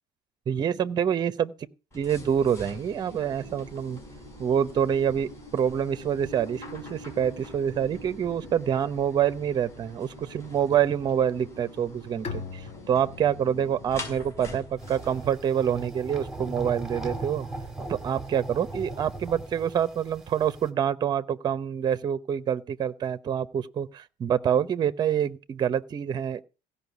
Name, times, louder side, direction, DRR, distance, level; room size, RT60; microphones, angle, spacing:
voice 1, 0.5-1.5 2.0-4.0 4.4-17.5 17.9-26.4, right 9 dB, 30° right, 0.8 m, -26 dB
sound 1, 1.9-15.8, left 1 dB, 20° left, 5.0 m, -44 dB
Bowed string instrument, 12.2-15.8, left 5 dB, 45° left, 1.9 m, -42 dB
sound 2, 14.8-20.7, right 2 dB, 5° right, 1.7 m, -38 dB
16.5 x 5.6 x 8.2 m
cardioid pair, 165°, 15 cm